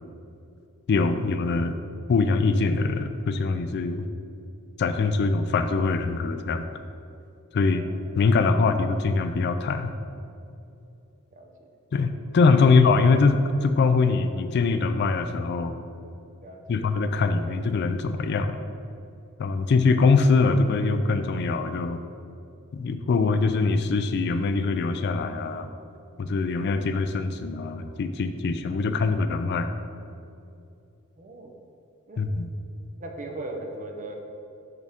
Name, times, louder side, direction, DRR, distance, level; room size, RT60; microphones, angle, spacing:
voice 1, 0.9-1.8 2.1-4.1 4.8-6.6 7.5-7.9 8.2-9.9 11.9-15.8 16.7-18.6 19.4-22.0 22.7-25.7 26.2-29.7 32.2-32.5, left 4 dB, 50° left, 9 dB, 0.3 m, -23 dB
voice 2, 11.3-11.7 12.6-12.7 16.4-16.9 17.1-17.2 31.2-31.6 32.1-32.2 33.0-34.2, right 2 dB, 35° right, 3 dB, 0.7 m, -39 dB
6.6 x 6.1 x 3.5 m, 2.7 s
head